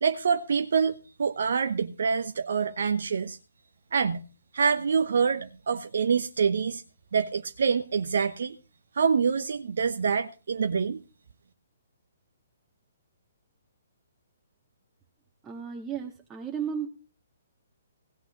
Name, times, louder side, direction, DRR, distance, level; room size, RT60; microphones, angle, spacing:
voice 1, 0.0-3.4 3.9-4.2 4.5-6.8 7.1-8.6 9.0-11.0, right 6 dB, 60° right, 7 dB, 0.9 m, -26 dB
voice 2, 15.4-16.9, right 7 dB, 15° right, 1 dB, 1.6 m, -34 dB
16.5 x 6.1 x 7.2 m, 0.32 s
figure-of-eight pair, 130°, 0 cm